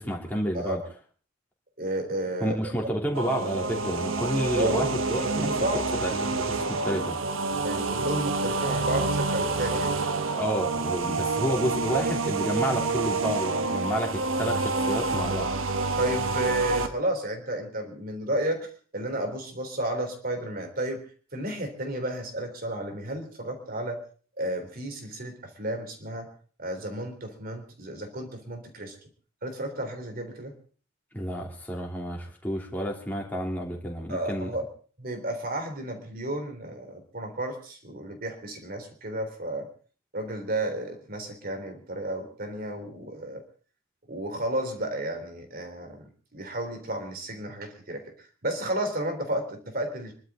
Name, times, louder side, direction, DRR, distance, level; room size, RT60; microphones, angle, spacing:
voice 1, 0.1-0.8 2.4-5.5 6.0-7.2 10.3-15.5 31.1-34.5, equal, 10° left, -1 dB, 3.3 m, -30 dB
voice 2, 1.8-2.6 4.5-4.9 5.2-5.8 7.6-9.9 16.0-21.0 21.3-24.0 24.4-26.3 26.6-28.9 29.4-30.5 34.1-34.6 35.0-39.7 40.1-43.4 44.1-50.1, right 1 dB, 45° right, 5 dB, 3.7 m, -32 dB
sound 1, 3.1-16.9, right 3 dB, 80° right, 1.2 m, -28 dB
26.0 x 12.5 x 3.8 m, 0.40 s
head